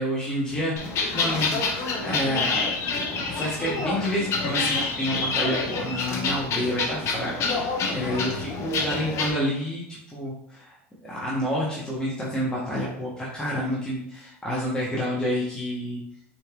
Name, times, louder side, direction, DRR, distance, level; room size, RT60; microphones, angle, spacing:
voice 1, 0.0-1.7 2.0-10.8 11.0-16.0, equal, 10° left, -6 dB, 1.0 m, -29 dB
sound 1, 0.8-9.3, left 4 dB, 45° left, 0.7 m, -27 dB
4.2 x 3.3 x 2.4 m, 0.73 s
hypercardioid pair, 95°, 7 cm